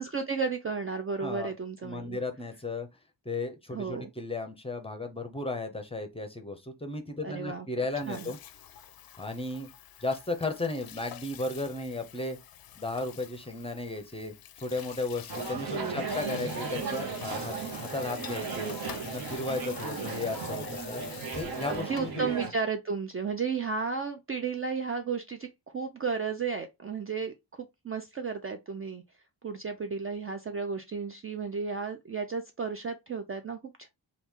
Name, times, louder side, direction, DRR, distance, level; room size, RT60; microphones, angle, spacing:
voice 1, 0.0-2.2 3.7-4.1 7.2-7.7 8.1-8.3 15.7-16.1 21.7-29.0 29.4-33.9, right 5 dB, 30° right, 0.4 m, -33 dB
voice 2, 1.2-1.5 1.8-2.9 3.2-8.4 9.2-9.7 10.0-12.4 12.7-18.8 19.0-22.3, left 2 dB, 15° left, 0.7 m, -35 dB
Water tap faucet / Sink (filling or washing), 7.9-22.2, left 10 dB, 55° left, 0.5 m, -48 dB
sound 1, 15.3-22.5, right 4 dB, 55° right, 1.0 m, -35 dB
3.1 x 2.4 x 3.5 m
wide cardioid pair, 125°, 44 cm